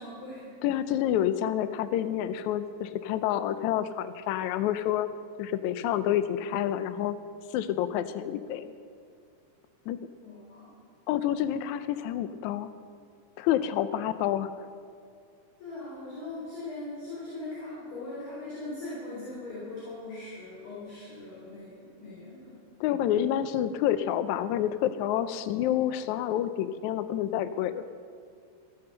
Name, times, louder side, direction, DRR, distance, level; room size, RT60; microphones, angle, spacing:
voice 1, 0.0-0.5 10.2-10.8 15.6-22.6, left 2 dB, 50° left, -8 dB, 4.6 m, -40 dB
voice 2, 0.6-5.1 5.4-7.1 7.5-8.7 9.9-10.0 11.1-12.7 13.4-14.7 22.8-27.8, left 11 dB, 85° left, 12 dB, 1.7 m, -28 dB
15.5 x 7.9 x 6.7 m, 2.4 s
omnidirectional pair, 4.0 m